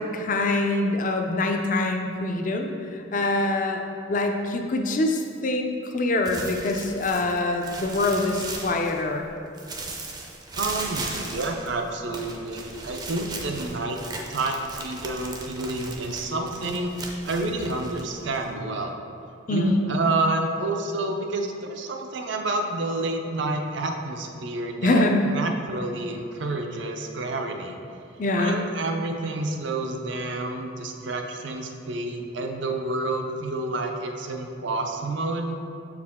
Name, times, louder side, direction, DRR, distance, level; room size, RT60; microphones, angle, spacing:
voice 1, 0.0-3.8 4.1-9.3 19.5-19.8 24.8-25.3 28.2-28.6, left 2 dB, 40° left, 3 dB, 0.4 m, -24 dB
sound 1, 6.2-9.2 9.5-18.5, right 3 dB, 20° right, 0.5 m, -37 dB
voice 2, 10.6-14.0 14.3-16.9 17.2-18.9 19.5-27.8 28.3-35.6, right 2 dB, 65° right, 4 dB, 0.5 m, -29 dB
6.9 x 4.8 x 3.6 m, 2.5 s
head